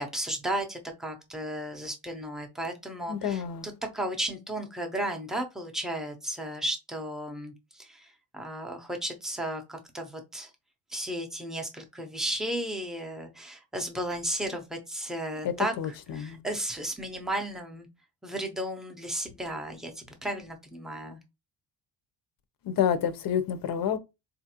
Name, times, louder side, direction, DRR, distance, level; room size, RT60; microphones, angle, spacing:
voice 1, 0.0-3.4 3.9-10.5 10.9-17.9 18.2-21.2, right 1 dB, ahead, 0.5 m, -34 dB
voice 2, 3.1-3.7 15.4-16.4 22.6-24.0, left 8 dB, 50° left, 0.6 m, -29 dB
3.9 x 2.5 x 2.8 m
cardioid pair, 135°, 45 cm